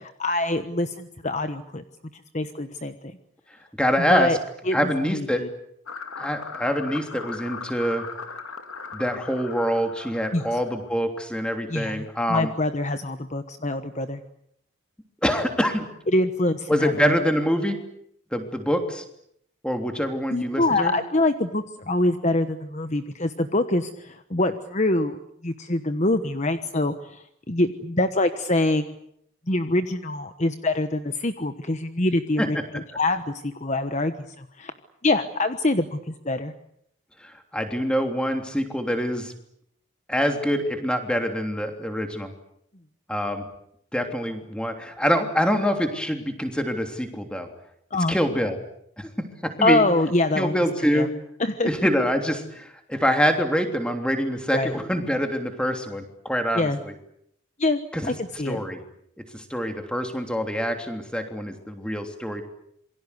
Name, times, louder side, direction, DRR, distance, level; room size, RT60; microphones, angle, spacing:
voice 1, 0.2-1.8 2.1-2.9 4.0-4.4 4.7-5.5 10.3-10.6 11.7-14.2 16.1-17.2 20.3-25.2 25.4-28.9 29.5-34.7 35.0-36.5 47.9-48.1 49.6-50.5 50.9-51.1 51.4-51.7 54.5-54.8 56.5-56.8 57.6-58.6, left 2 dB, 35° left, 9 dB, 1.2 m, -25 dB
voice 2, 3.8-4.3 4.7-5.4 6.2-8.0 8.9-12.5 15.2-15.8 16.7-17.8 18.3-19.0 19.6-20.9 32.4-32.5 37.2-39.3 40.1-42.3 43.1-43.5 43.9-47.5 48.1-48.6 49.0-49.8 50.3-51.1 51.6-56.9 57.9-58.1 58.5-58.8 59.3-62.4, equal, 5° left, 5 dB, 3.2 m, -25 dB
sound 1, 5.9-10.9, left 5 dB, 85° left, 2.9 m, -38 dB
27.5 x 23.5 x 8.3 m, 0.72 s
head